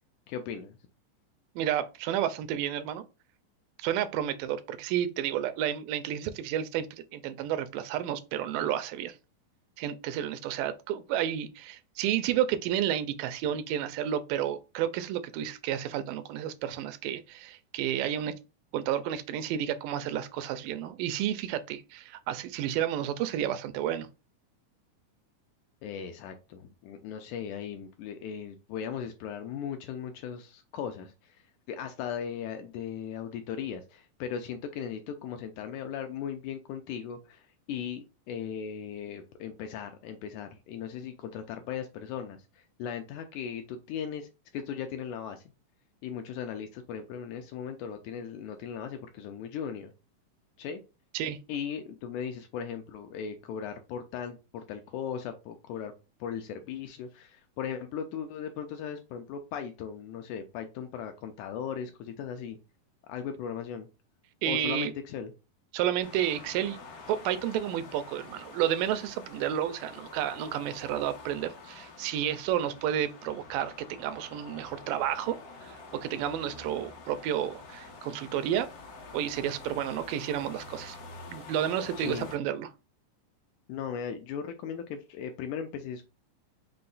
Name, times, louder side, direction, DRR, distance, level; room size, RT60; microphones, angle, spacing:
voice 1, 0.3-0.8 25.8-31.4 31.7-45.4 46.0-49.9 50.6-50.8 51.5-55.9 56.2-62.6 63.1-63.9 64.4-65.3 82.0-82.3 83.7-86.1, left 8 dB, 80° left, 1.8 m, -38 dB
voice 2, 1.6-3.0 3.8-9.2 9.8-18.3 18.7-24.1 51.1-51.4 64.4-64.9 65.7-66.8 67.1-78.7 79.1-81.0 81.3-82.7, right 10 dB, 90° right, 2.2 m, -31 dB
sound 1, 66.0-82.4, left 3 dB, 60° left, 1.8 m, -47 dB
5.6 x 2.1 x 3.9 m
omnidirectional pair, 3.8 m